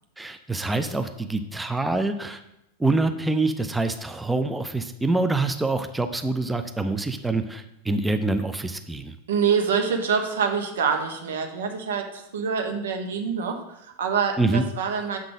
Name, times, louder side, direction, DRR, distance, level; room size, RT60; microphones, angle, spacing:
voice 1, 0.2-2.4 2.8-9.1 14.4-14.6, right 2 dB, 5° right, 8 dB, 0.5 m, -25 dB
voice 2, 9.3-15.2, right 6 dB, 60° right, 5 dB, 1.1 m, -26 dB
7.3 x 3.8 x 6.1 m, 0.85 s
figure-of-eight pair, 90°, 0 cm